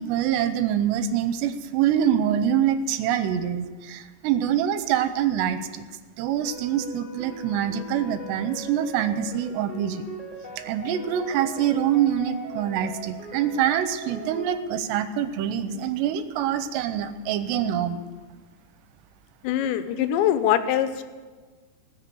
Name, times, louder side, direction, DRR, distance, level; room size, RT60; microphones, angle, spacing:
voice 1, 0.0-5.9 6.2-10.1 10.6-18.0, right 9 dB, 80° right, 11 dB, 2.8 m, -25 dB
sound 1, 6.4-14.4, right 1 dB, 15° left, 1.3 m, -40 dB
voice 2, 19.4-21.0, left 11 dB, 85° left, 10 dB, 3.1 m, -23 dB
19.5 x 6.6 x 8.4 m, 1.4 s
omnidirectional pair, 5.0 m